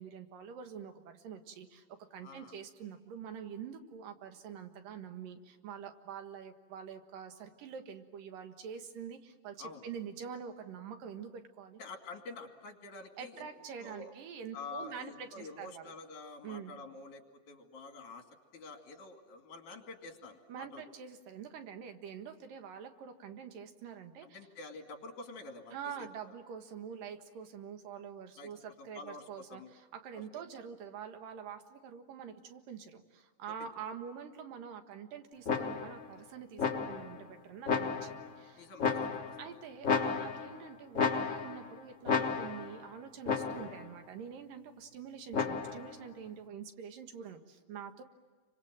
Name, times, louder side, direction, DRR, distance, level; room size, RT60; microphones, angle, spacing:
voice 1, 0.0-11.8 13.2-15.9 16.4-16.7 20.5-24.4 25.7-38.6 39.4-48.0, right 7 dB, 90° right, 6 dB, 3.2 m, -46 dB
voice 2, 2.2-2.5 9.6-9.8 11.8-13.5 13.8-14.1 14.5-18.2 18.5-20.8 24.2-26.1 28.4-28.5 28.8-29.7 30.4-30.5 33.6-33.7 38.6-39.4, left 3 dB, 65° left, 4 dB, 3.8 m, -48 dB
sound 1, 35.5-36.0 36.6-37.2 37.7-38.3 38.8-39.5 39.8-40.6 40.9-41.7 42.1-42.8 43.3-43.8 45.3-45.9, left 5 dB, 45° left, 1.0 m, -33 dB
30.0 x 25.0 x 7.6 m, 1.4 s
omnidirectional pair, 3.8 m